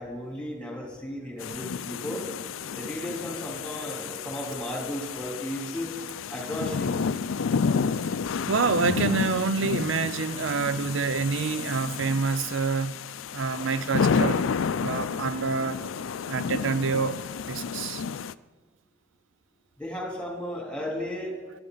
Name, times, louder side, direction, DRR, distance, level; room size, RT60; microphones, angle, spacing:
voice 1, 0.0-2.3 2.7-5.9 6.3-7.0 19.8-21.4, equal, 5° left, 3.3 m, -34 dB
sound 1, 1.4-18.3, left 5 dB, 90° left, 0.4 m, -31 dB
voice 2, 8.5-13.0 13.3-15.8 16.3-17.2 17.5-18.0, right 4 dB, 75° right, 0.5 m, -27 dB
23.5 x 11.5 x 4.0 m
head